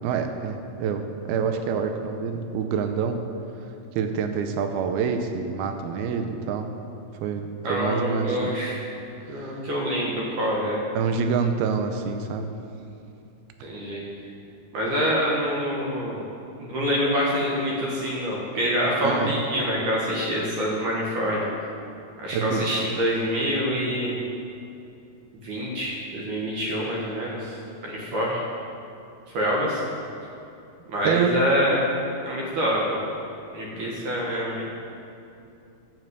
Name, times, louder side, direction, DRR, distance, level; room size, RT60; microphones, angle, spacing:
voice 1, 0.0-3.3 4.0-6.7 7.2-8.5 9.3-9.6 11.0-12.5 19.0-19.3 22.3-22.7 31.0-31.5, right 6 dB, 85° right, 6 dB, 2.7 m, -26 dB
voice 2, 7.6-8.8 9.3-10.8 13.6-14.0 14.7-16.2 16.6-21.4 22.2-24.2 25.4-27.6 27.8-28.4 29.3-29.8 30.9-31.8 32.2-33.0 33.5-34.7, equal, 60° right, -4 dB, 2.7 m, -26 dB
11.0 x 7.6 x 8.1 m, 2.6 s
omnidirectional pair, 4.4 m